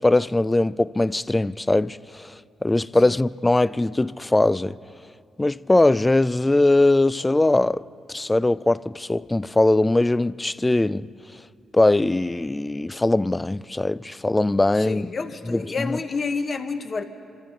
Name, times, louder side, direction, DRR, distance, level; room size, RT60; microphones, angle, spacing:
voice 1, 0.0-4.8 5.4-11.1 11.7-15.1 15.5-16.0, left 2 dB, 20° left, 0.4 m, -21 dB
voice 2, 14.7-17.0, left 4 dB, 50° left, 1.2 m, -29 dB
27.0 x 13.5 x 3.9 m
supercardioid pair, 55°, 0 cm